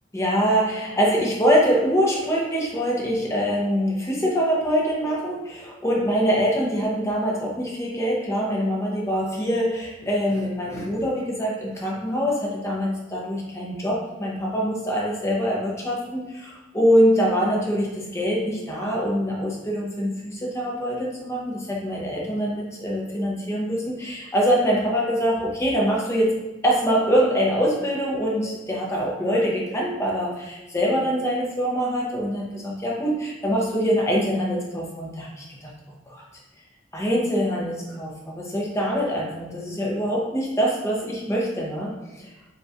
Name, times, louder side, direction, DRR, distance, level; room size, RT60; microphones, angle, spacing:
voice 1, 0.1-26.3 26.6-35.7 36.1-36.2 36.9-42.3, equal, 15° left, -3 dB, 0.8 m, -24 dB
5.1 x 3.0 x 2.5 m, 1.1 s
head